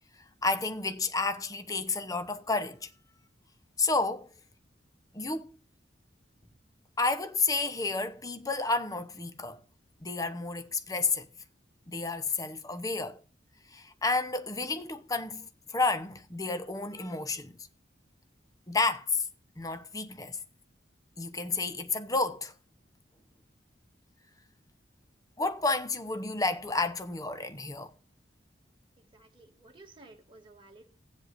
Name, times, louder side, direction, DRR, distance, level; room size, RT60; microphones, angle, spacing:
voice 1, 0.4-2.9 3.8-4.3 5.1-5.6 7.0-9.6 10.0-11.3 11.9-13.2 13.7-17.5 18.7-19.3 19.6-20.4 21.2-22.5 25.4-27.9, left 3 dB, 20° left, 0.8 m, -31 dB
voice 2, 29.0-31.0, right 2 dB, 30° right, 2.5 m, -55 dB
18.5 x 7.7 x 2.6 m
head